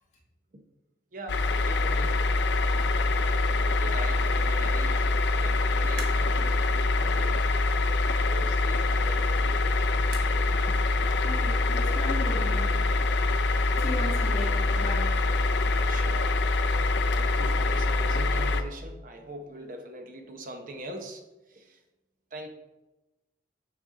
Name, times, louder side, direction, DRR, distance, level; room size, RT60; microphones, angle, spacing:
voice 1, 1.1-2.2 3.6-7.4 8.3-10.0 10.7-10.8 15.8-16.4 17.1-21.8 22.3-22.5, right 1 dB, 50° right, 4 dB, 0.9 m, -42 dB
sound 1, 1.3-18.6, left 2 dB, 85° left, 0.5 m, -25 dB
sound 2, 5.8-6.5 6.9-10.7, right 3 dB, 70° right, 1.3 m, -48 dB
voice 2, 11.2-12.8 13.8-15.2, left 1 dB, 45° left, -3 dB, 1.8 m, -36 dB
6.4 x 5.4 x 3.7 m, 1.0 s
head